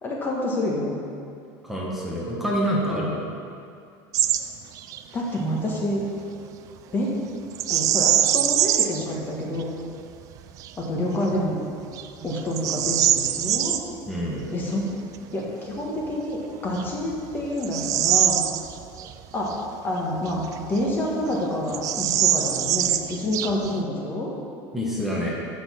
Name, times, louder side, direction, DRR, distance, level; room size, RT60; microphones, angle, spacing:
voice 1, 0.0-1.0 2.9-3.1 5.1-6.0 6.9-7.1 7.7-9.7 10.8-11.6 12.2-13.8 14.5-14.9 15.3-18.4 19.3-19.5 19.8-24.3, left 1 dB, 20° left, -3 dB, 1.3 m, -28 dB
voice 2, 1.6-3.1 14.1-14.5 24.7-25.3, equal, ahead, -5 dB, 1.2 m, -26 dB
Bird vocalization bird call bird song, 4.1-4.4 4.7-5.0 7.5-9.0 9.6-9.7 10.3-10.7 11.3-11.4 11.9-13.8 15.9-16.0 16.7-19.1 19.5-19.6 20.3-21.1 21.3-21.4 21.7-23.8, right 11 dB, 40° right, 0.4 m, -23 dB
7.9 x 6.2 x 6.1 m, 2.4 s
cardioid pair, 160°, 9 cm